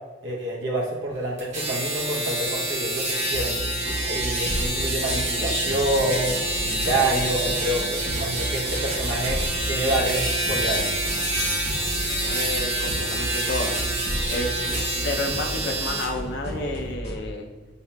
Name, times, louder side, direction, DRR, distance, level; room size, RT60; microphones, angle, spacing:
voice 1, 0.2-3.6 4.1-6.3 6.6-10.9 14.7-14.8, right 1 dB, 80° right, -2 dB, 0.8 m, -27 dB
sound 1, 1.4-16.1, right 1 dB, 35° right, 1.1 m, -27 dB
electronic beat, 3.3-17.2, right 1 dB, 30° left, 1.5 m, -33 dB
voice 2, 12.1-13.8 14.3-17.5, left 2 dB, 60° left, 3 dB, 0.5 m, -31 dB
5.2 x 2.7 x 2.2 m, 1.3 s
head